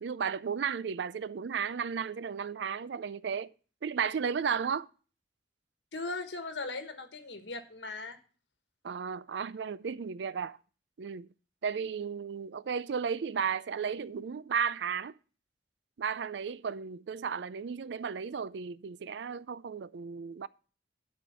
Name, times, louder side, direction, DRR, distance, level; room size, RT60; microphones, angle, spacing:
voice 1, 0.0-3.5 3.8-4.9 8.8-10.6 11.0-11.3 11.6-15.2 16.0-20.5, right 6 dB, 80° right, 0.4 m, -34 dB
voice 2, 5.9-8.2, left 3 dB, 85° left, 1.4 m, -38 dB
11.5 x 4.4 x 6.8 m
head